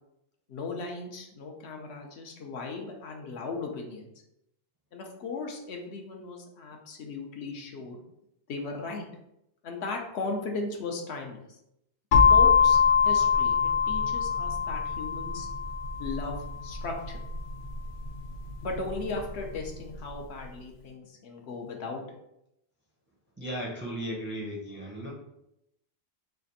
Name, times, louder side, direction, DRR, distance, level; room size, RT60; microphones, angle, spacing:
voice 1, 0.5-4.1 4.9-8.0 8.5-9.0 9.6-11.6 12.3-12.8 13.0-13.6 13.9-15.5 16.0-17.2 18.6-22.2, left 3 dB, 80° left, 2 dB, 1.0 m, -37 dB
sound 1, 12.1-19.9, left 6 dB, 55° left, 0.7 m, -24 dB
voice 2, 23.4-25.1, equal, 15° right, -1 dB, 0.4 m, -35 dB
3.4 x 2.4 x 4.0 m, 0.81 s
omnidirectional pair, 1.1 m